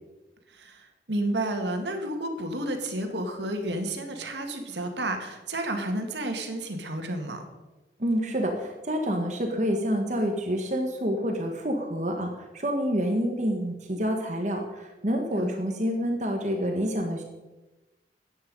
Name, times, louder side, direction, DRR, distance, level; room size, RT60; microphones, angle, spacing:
voice 1, 0.5-7.5 15.3-15.5, right 1 dB, 85° right, 5 dB, 2.0 m, -31 dB
voice 2, 8.0-17.2, equal, 40° right, 3 dB, 1.4 m, -28 dB
13.5 x 9.3 x 5.3 m, 1.1 s
head